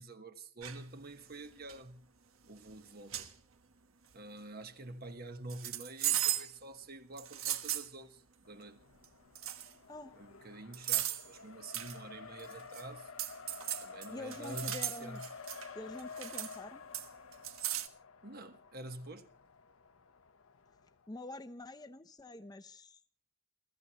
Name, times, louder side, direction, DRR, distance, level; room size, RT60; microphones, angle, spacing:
voice 1, 0.0-2.0 2.5-3.3 4.1-8.9 10.2-13.1 13.8-15.3 18.2-19.3, right 2 dB, 45° right, 1.2 m, -48 dB
sound 1, 0.6-0.8 1.5-1.8 2.7-2.8 3.1-3.3 5.5-6.5 7.2-7.9 9.0-9.1 9.4-9.7 10.7-11.3 11.7-12.0 12.4-12.8 13.2-15.7 16.0-16.6 16.9-17.9, right 12 dB, 75° right, 1.3 m, -36 dB
Race car auto racing, 8.5-21.1, left 4 dB, 80° left, 0.9 m, -51 dB
voice 2, 14.1-15.2 15.7-16.8 21.1-23.0, left 2 dB, 20° left, 0.7 m, -46 dB
29.5 x 15.5 x 3.0 m
head